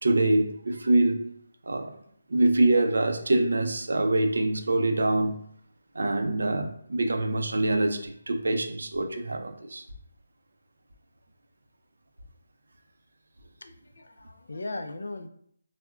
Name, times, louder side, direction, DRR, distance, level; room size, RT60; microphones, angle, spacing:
voice 1, 0.0-1.2 1.7-1.9 2.3-5.4 6.0-9.8, right 2 dB, 80° right, 5 dB, 0.4 m, -24 dB
voice 2, 13.6-15.3, left 2 dB, 75° left, 7 dB, 0.3 m, -38 dB
3.6 x 2.1 x 2.3 m, 0.67 s
hypercardioid pair, 170°, 0 cm